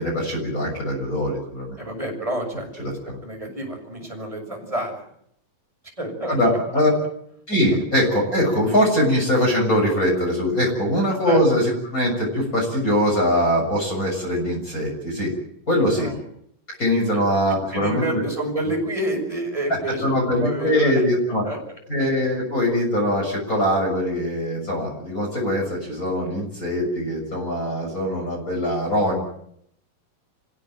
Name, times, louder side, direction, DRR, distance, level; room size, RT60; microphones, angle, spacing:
voice 1, 0.0-1.8 3.1-3.2 6.3-6.9 7.5-15.3 15.7-16.1 16.8-18.2 20.0-21.4 21.9-29.2, equal, 25° left, -2 dB, 7.2 m, -22 dB
voice 2, 1.8-5.0 6.0-6.4 11.3-11.4 15.9-16.2 17.1-17.2 17.7-21.0 21.4-21.6, right 1 dB, 10° right, 2 dB, 6.7 m, -29 dB
28.5 x 16.0 x 9.2 m, 0.71 s
omnidirectional pair, 3.9 m